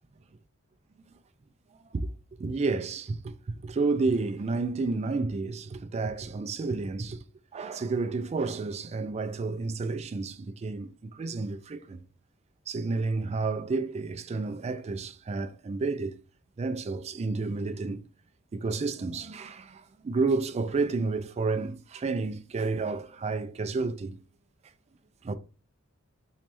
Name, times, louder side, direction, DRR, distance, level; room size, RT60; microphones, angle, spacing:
voice 1, 2.4-7.2 7.5-12.0 12.7-16.2 16.6-18.0 18.5-24.2 25.2-25.3, right 3 dB, 30° right, 0.3 m, -30 dB
3.2 x 3.1 x 2.9 m
head